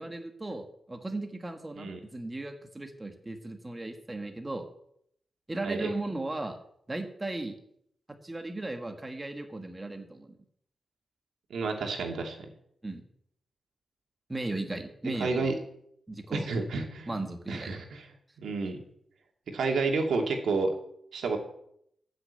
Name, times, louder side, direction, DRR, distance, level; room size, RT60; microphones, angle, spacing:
voice 1, 0.0-4.7 5.5-6.6 6.9-7.5 8.2-10.4 12.8-13.0 14.3-15.5 16.1-16.5 17.1-17.8, right 2 dB, 20° right, 5 dB, 1.6 m, -36 dB
voice 2, 11.5-12.4 15.1-15.6 16.3-17.1 17.5-18.1 18.4-18.8 19.5-20.7 21.1-21.4, right 4 dB, 85° right, 3 dB, 2.4 m, -30 dB
14.0 x 6.6 x 8.2 m, 0.71 s
wide cardioid pair, 100°, 0 cm